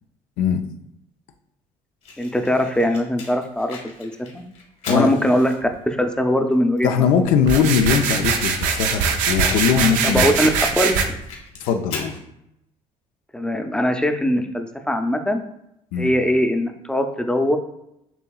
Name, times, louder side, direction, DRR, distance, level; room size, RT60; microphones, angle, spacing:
Fire, 2.0-5.8 6.5-6.6 6.8-6.9 7.1-7.2 7.7-10.6 11.0-12.2, left 4 dB, 65° left, 1.6 m, -38 dB
voice 1, 2.2-4.4 4.9-7.1 10.0-10.5 10.8-11.2 13.3-15.4 16.0-17.6, equal, 5° left, 5 dB, 0.5 m, -21 dB
voice 2, 6.8-10.2 11.6-12.1 15.9-16.1, left 7 dB, 90° left, 6 dB, 0.5 m, -20 dB
sound 1, 7.4-11.0, right 6 dB, 85° right, 0.5 m, -22 dB
6.9 x 2.8 x 2.3 m, 0.80 s
cardioid pair, 85°, 13 cm